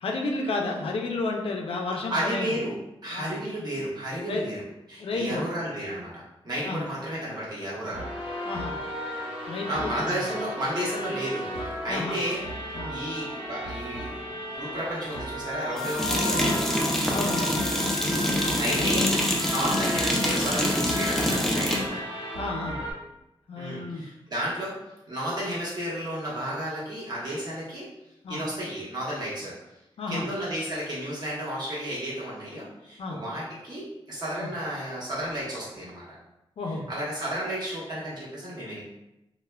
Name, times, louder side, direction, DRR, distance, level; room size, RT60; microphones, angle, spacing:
voice 1, 0.0-2.5 3.1-3.4 4.3-4.5 5.0-5.4 6.7-6.9 8.4-8.8 9.5-10.2 11.9-12.2 12.7-13.0 17.1-17.5 22.3-22.8 23.5-24.0 28.2-28.4 30.0-30.3 33.0-33.2 34.4-34.5 36.6-36.9, left 3 dB, 75° left, 1 dB, 0.4 m, -31 dB
voice 2, 2.1-2.7 3.0-6.1 6.4-8.1 9.7-12.4 12.9-16.9 18.6-22.0 23.6-24.7 25.1-27.9 28.3-29.5 30.1-36.0 36.7-38.8, equal, 45° right, -7 dB, 1.0 m, -32 dB
sound 1, 7.9-22.9, left 1 dB, 75° right, 0.9 m, -35 dB
sound 2, 12.3-12.4 15.8-21.9, left 1 dB, 5° left, 0.3 m, -25 dB
3.1 x 2.0 x 2.2 m, 0.91 s
wide cardioid pair, 165°, 10 cm